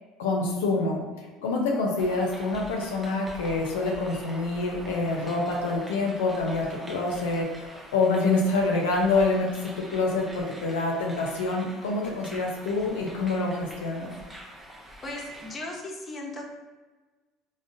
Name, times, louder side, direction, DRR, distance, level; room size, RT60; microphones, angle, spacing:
voice 1, 0.2-14.1, left 3 dB, 85° left, -1 dB, 0.4 m, -26 dB
sound 1, 2.0-15.6, equal, 10° right, 0.6 m, -45 dB
voice 2, 15.0-16.5, left 1 dB, 30° left, 0 dB, 0.7 m, -37 dB
3.6 x 2.1 x 2.5 m, 1.3 s
hypercardioid pair, 80°, 0 cm